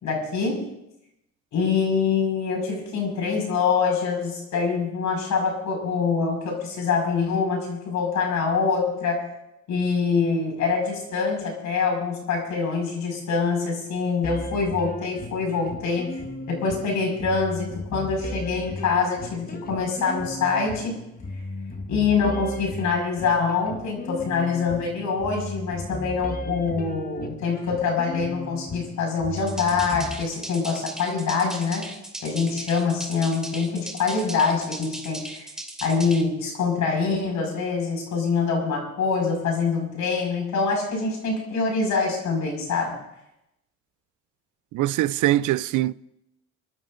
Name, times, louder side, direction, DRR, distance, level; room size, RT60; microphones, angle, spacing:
voice 1, 0.0-0.7 1.5-9.3 9.7-16.2 16.5-21.0 21.9-31.9 32.2-35.5 35.8-43.0, left 5 dB, 75° left, 5.5 m, -25 dB
sound 1, 14.2-30.2, left 1 dB, 30° left, 1.4 m, -36 dB
sound 2, 29.4-36.2, right 1 dB, ahead, 2.5 m, -38 dB
voice 2, 44.7-45.9, right 15 dB, 80° right, 0.5 m, -22 dB
28.5 x 12.5 x 2.6 m
cardioid pair, 90°, 30 cm